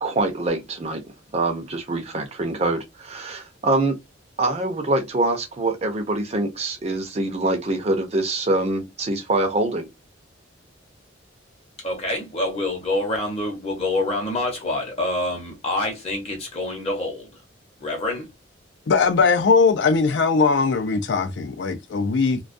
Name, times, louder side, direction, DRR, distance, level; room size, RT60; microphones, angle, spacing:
voice 1, 0.0-4.0 4.4-9.9, right 2 dB, 30° right, 0.5 m, -24 dB
voice 2, 11.8-17.3 17.8-18.3, left 2 dB, 30° left, 0.8 m, -26 dB
voice 3, 18.9-22.4, left 4 dB, 60° left, 0.4 m, -20 dB
2.3 x 2.2 x 2.5 m
head